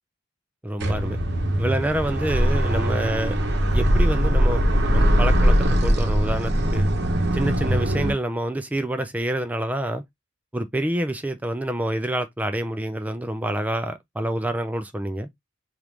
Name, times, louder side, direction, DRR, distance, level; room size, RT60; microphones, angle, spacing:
voice 1, 0.6-1.2 1.6-3.4 3.7-4.6 4.9-6.9 7.3-10.0 10.5-15.3, right 1 dB, 10° right, 0.3 m, -27 dB
sound 1, 0.8-8.1, equal, 60° right, 0.8 m, -21 dB
3.4 x 2.4 x 2.9 m
head